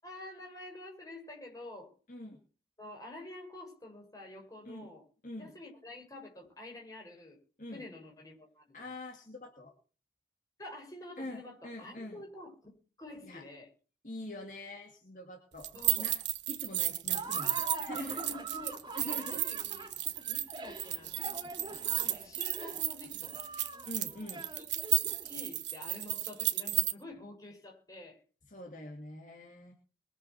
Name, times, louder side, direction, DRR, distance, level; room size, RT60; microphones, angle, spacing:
voice 1, 0.0-1.9 2.8-5.0 5.4-7.4 7.7-8.9 10.6-12.7 13.0-13.7 15.7-16.1 16.8-16.9 17.9-19.9 20.2-21.2 22.0-23.5 25.2-28.2, left 2 dB, 20° left, 0 dB, 6.5 m, -48 dB
voice 2, 2.1-2.4 4.6-4.9 5.2-5.5 7.6-7.8 8.7-9.7 11.2-12.2 13.2-13.4 14.0-15.7 16.0-16.2 16.5-18.4 18.9-19.4 23.9-24.4 28.5-29.7, left 1 dB, 45° left, 1 dB, 2.6 m, -44 dB
sound 1, 15.6-26.9, right 15 dB, 80° right, 1.2 m, -33 dB
Laughter, 17.1-25.4, right 2 dB, 25° right, 2.9 m, -43 dB
22.0 x 7.6 x 5.9 m, 0.38 s
head